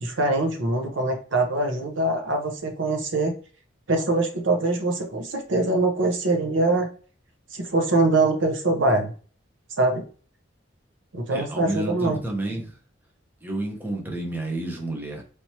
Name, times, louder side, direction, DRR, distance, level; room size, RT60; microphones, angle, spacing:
voice 1, 0.0-3.3 3.9-6.9 7.5-9.1 9.8-10.0 11.1-12.2, right 2 dB, 75° right, 3 dB, 0.8 m, -23 dB
voice 2, 11.3-12.8 13.4-15.2, right 1 dB, 10° right, 0 dB, 0.8 m, -30 dB
3.3 x 3.1 x 2.8 m, 0.40 s
head